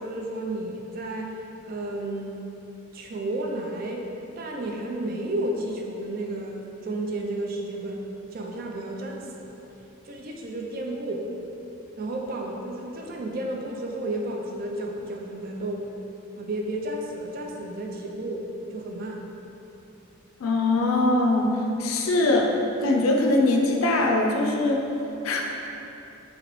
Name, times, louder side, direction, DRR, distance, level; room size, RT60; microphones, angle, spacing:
voice 1, 0.0-2.4 2.9-4.1 4.4-8.0 8.3-9.6 10.0-11.3 12.0-15.8 16.4-18.5 18.7-19.2, right 1 dB, 45° right, 0 dB, 0.3 m, -32 dB
voice 2, 20.4-22.5 22.8-24.9 25.2-25.4, left 2 dB, 90° left, 1 dB, 0.4 m, -22 dB
2.9 x 2.9 x 3.0 m, 3.0 s
head